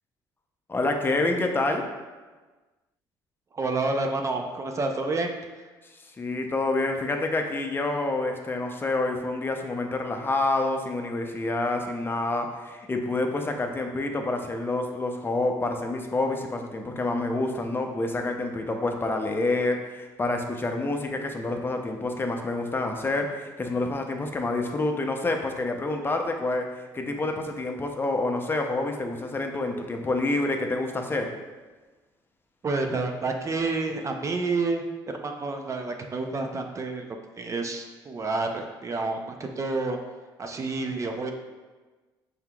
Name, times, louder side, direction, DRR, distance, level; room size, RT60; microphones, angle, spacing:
voice 1, 0.7-1.8 6.2-26.7 26.9-31.3, left 2 dB, 25° left, 3 dB, 0.6 m, -28 dB
voice 2, 3.5-5.7 32.6-40.0 40.4-41.3, right 3 dB, 35° right, 4 dB, 0.5 m, -29 dB
5.6 x 3.5 x 2.3 m, 1.3 s
supercardioid pair, 80°, 9 cm